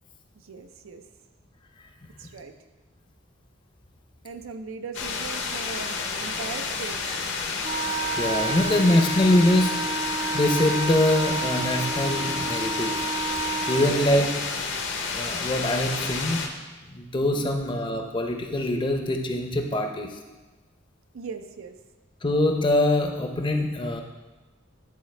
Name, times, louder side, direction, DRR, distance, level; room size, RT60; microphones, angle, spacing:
voice 1, 0.4-1.0 2.2-2.5 4.2-7.2 13.8-14.4 17.2-17.5 21.1-21.8, right 5 dB, 90° right, 8 dB, 0.5 m, -39 dB
sound 1, 4.9-16.5, left 4 dB, 60° left, 0.8 m, -30 dB
Wind instrument woodwind instrument, 7.6-14.0, right 3 dB, 35° right, 0.3 m, -31 dB
voice 2, 8.2-9.7 10.3-12.9 13.7-14.3 15.1-16.4 16.9-20.1 22.2-24.0, left 1 dB, 25° left, 4 dB, 0.6 m, -23 dB
10.5 x 4.0 x 3.2 m, 1.2 s
head